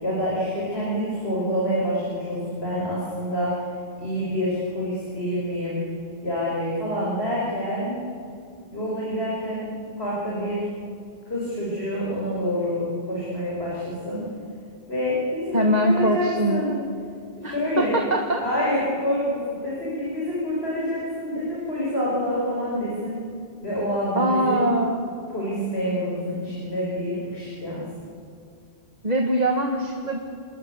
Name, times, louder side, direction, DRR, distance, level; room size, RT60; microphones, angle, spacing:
voice 1, 0.0-3.6 4.0-5.8 6.2-8.0 8.7-9.7 10.0-10.7 11.3-14.2 14.9-16.7 17.4-18.0 18.4-23.2 23.6-24.6 25.3-27.8, equal, 90° left, -6 dB, 6.2 m, -27 dB
voice 2, 15.5-16.6 17.4-18.4 24.1-25.1 29.0-30.2, right 1 dB, 40° right, 2 dB, 1.9 m, -22 dB
28.5 x 21.5 x 8.3 m, 2.3 s
omnidirectional pair, 1.0 m